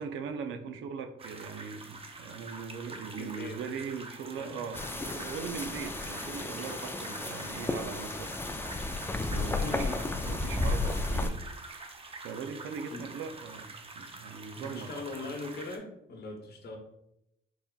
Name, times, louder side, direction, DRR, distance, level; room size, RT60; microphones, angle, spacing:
voice 1, 0.0-8.3 9.3-15.0, right 6 dB, 80° right, 8 dB, 0.5 m, -40 dB
sound 1, 1.2-15.8, right 3 dB, 30° right, 0.6 m, -46 dB
voice 2, 3.2-3.6 4.4-4.6 9.6-10.0 12.9-13.0 14.5-16.8, left 3 dB, 55° left, 3 dB, 0.9 m, -40 dB
sound 2, 4.7-11.3, left 2 dB, 10° left, 0.3 m, -33 dB
4.1 x 3.4 x 2.3 m, 0.82 s
cardioid pair, 90°, 20 cm